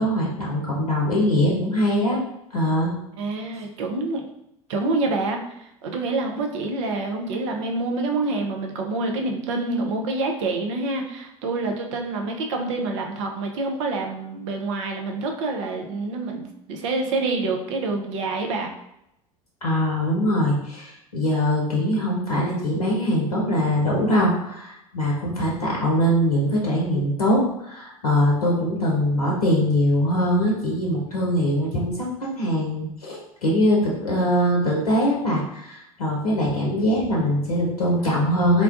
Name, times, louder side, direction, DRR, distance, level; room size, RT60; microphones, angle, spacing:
voice 1, 0.0-2.2 2.5-2.9 19.6-38.6, equal, 80° left, -3 dB, 0.7 m, -22 dB
voice 2, 3.2-4.2 4.7-18.7, right 3 dB, 55° right, 2 dB, 0.6 m, -27 dB
3.8 x 2.2 x 2.4 m, 0.81 s
figure-of-eight pair, 75°, 19 cm